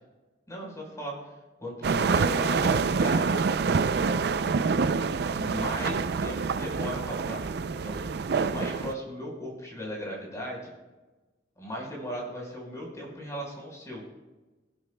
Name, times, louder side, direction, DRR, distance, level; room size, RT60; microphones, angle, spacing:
voice 1, 0.5-1.1 1.6-3.5 5.4-7.4 7.7-8.0 8.3-10.7 11.6-14.0, equal, 20° left, -2 dB, 4.5 m, -37 dB
sound 1, 1.8-8.9, right 5 dB, 60° right, 0.4 m, -26 dB
23.0 x 11.0 x 2.2 m, 1.2 s
head